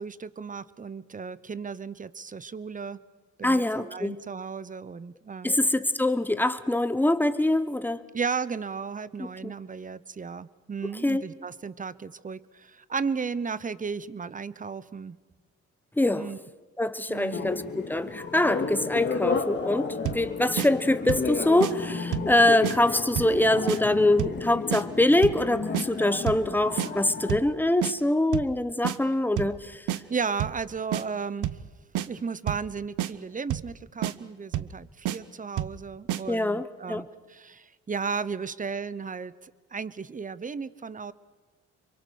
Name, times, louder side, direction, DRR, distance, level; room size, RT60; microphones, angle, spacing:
voice 1, 0.0-3.0 3.4-5.5 8.1-15.2 16.1-16.4 17.1-17.5 30.1-31.7 32.0-41.1, right 5 dB, 25° right, 18 dB, 0.9 m, -34 dB
voice 2, 3.4-4.1 5.4-8.0 9.2-9.5 11.0-11.2 16.0-16.3 16.8-29.8 36.3-37.1, left 1 dB, 5° left, 12 dB, 1.2 m, -24 dB
sound 1, 17.3-27.4, left 4 dB, 35° left, 2.4 m, -32 dB
sound 2, 20.0-20.3 20.6-20.7 21.1-21.3 21.6-21.7 22.1-22.3 22.6-22.8 23.2-23.4 23.7-23.8 24.2-24.4 24.7-24.8 25.2-25.4 25.7-25.9 26.3-26.5 26.8-26.9 27.3-27.5 27.8-27.9 28.3-28.5 28.8-29.0 29.4-29.6 29.9-30.0 30.4-30.6 30.9-31.0 31.4-31.7 31.9-32.1 32.5-32.7 33.0-33.1 33.5-33.7 34.0-34.1 34.5-34.8 35.0-35.2 35.6-35.8 36.1-36.2, right 13 dB, 80° right, 1.0 m, -29 dB
27.0 x 24.0 x 6.6 m, 1.3 s
cardioid pair, 90°, 30 cm